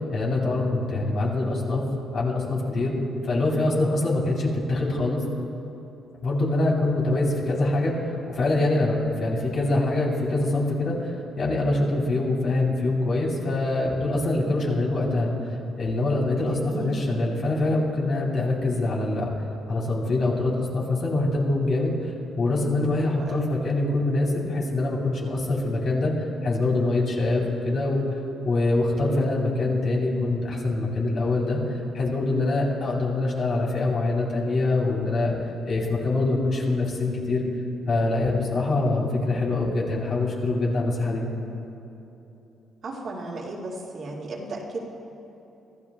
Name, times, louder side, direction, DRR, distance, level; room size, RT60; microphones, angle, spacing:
voice 1, 0.1-1.8 2.1-3.0 3.2-5.2 6.2-15.3 15.8-19.3 19.7-28.2 28.4-35.3 35.7-37.4 37.9-41.3, left 2 dB, 60° left, -3 dB, 3.7 m, -24 dB
voice 2, 16.4-17.0 23.0-23.5 42.8-44.8, right 2 dB, 55° right, -3 dB, 2.2 m, -35 dB
25.0 x 13.5 x 2.4 m, 3.0 s
cardioid pair, 90°, 0 cm